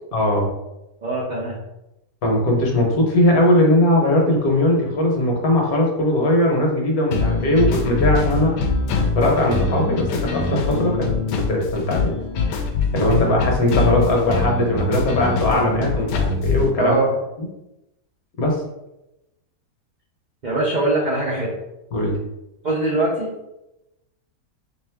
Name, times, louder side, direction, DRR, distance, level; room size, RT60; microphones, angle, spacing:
voice 1, 0.1-0.5 2.2-8.5 9.1-11.1 11.5-12.1 12.9-16.9 17.4-17.5 18.4-18.6 21.9-22.2, left 1 dB, 65° left, 0 dB, 1.3 m, -19 dB
voice 2, 1.0-1.6 16.8-17.2 20.4-21.5 22.6-23.3, right 2 dB, 75° right, -4 dB, 0.4 m, -22 dB
sound 1, 7.1-16.7, left 4 dB, 90° left, 1.2 m, -23 dB
3.5 x 3.0 x 3.4 m, 0.92 s
omnidirectional pair, 1.8 m